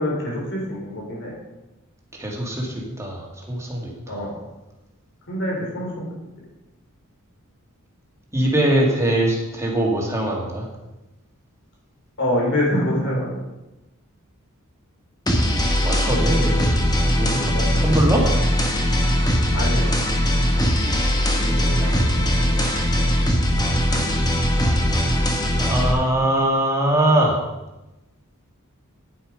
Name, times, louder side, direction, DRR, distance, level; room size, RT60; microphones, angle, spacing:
voice 1, 0.0-1.3 4.1-4.3 5.3-6.0 12.2-13.4 17.5-17.9 19.5-19.9 23.9-24.0, left 1 dB, 60° left, -3 dB, 4.5 m, -25 dB
voice 2, 2.1-4.3 8.3-10.7 15.8-16.7 17.2-18.3 21.4-22.5 25.6-27.4, right 1 dB, 15° right, -2 dB, 2.4 m, -22 dB
sound 1, 15.3-25.9, equal, 20° left, 1.4 m, -20 dB
10.0 x 8.7 x 5.3 m, 1.0 s
head